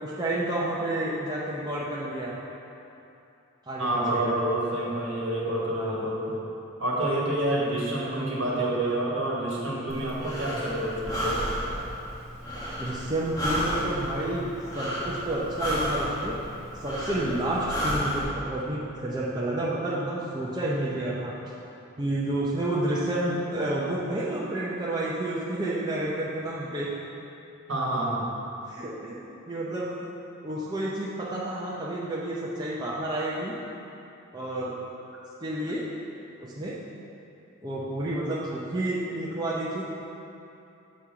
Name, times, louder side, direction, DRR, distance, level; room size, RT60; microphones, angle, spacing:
voice 1, 0.0-2.3 3.7-4.4 5.8-6.1 12.8-14.5 14.7-16.4 16.7-21.4 22.0-26.9 28.7-30.1 30.4-33.5 34.3-34.7 35.4-35.8 36.4-36.8 37.6-39.9, right 1 dB, 20° right, -7 dB, 0.6 m, -30 dB
voice 2, 3.8-6.4 6.8-11.4 27.7-28.3, right 1 dB, 65° right, -5 dB, 1.4 m, -28 dB
Breathing, 9.9-18.2, equal, 15° left, 1.0 m, -32 dB
6.2 x 4.2 x 5.7 m, 2.8 s
head